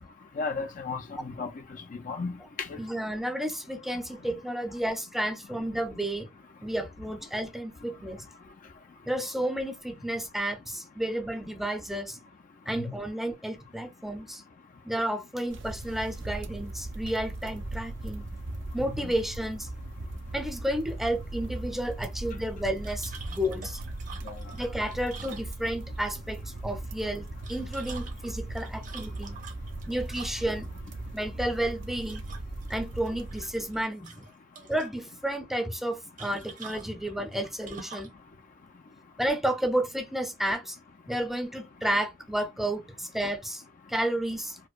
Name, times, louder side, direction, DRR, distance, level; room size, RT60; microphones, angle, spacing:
voice 1, 0.3-2.8 3.9-4.0 12.8-12.9 18.9-19.1 24.2-24.6, left 4 dB, 40° left, 0.4 m, -35 dB
voice 2, 2.8-6.3 6.6-8.2 9.1-12.2 12.7-14.4 14.8-18.3 18.7-19.7 20.3-23.8 24.5-29.4 29.9-30.7 31.1-32.2 32.7-34.2 34.7-38.1 39.2-40.8 41.1-43.6 43.9-44.6, right 1 dB, ahead, 0.6 m, -31 dB
sound 1, 15.5-33.8, right 2 dB, 65° right, 0.6 m, -39 dB
sound 2, 22.8-26.0 27.2-30.7 32.0-32.7 33.1-33.8 34.0-34.9 36.2-38.2, right 5 dB, 40° right, 0.9 m, -46 dB
4.4 x 2.1 x 2.4 m
head